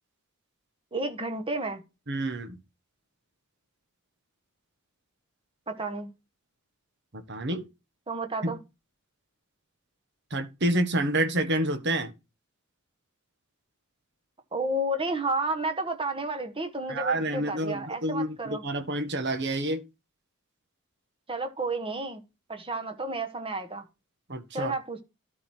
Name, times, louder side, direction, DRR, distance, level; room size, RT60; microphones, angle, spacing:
voice 1, 0.9-1.8 5.7-6.1 8.1-8.6 14.5-18.6 21.3-22.2 22.5-23.9 24.5-25.0, right 2 dB, 25° right, 1.4 m, -31 dB
voice 2, 2.1-2.6 7.1-7.6 8.4-8.5 10.3-12.1 16.9-19.8 24.3-24.7, right 1 dB, 50° right, 1.4 m, -28 dB
12.5 x 4.7 x 4.4 m
head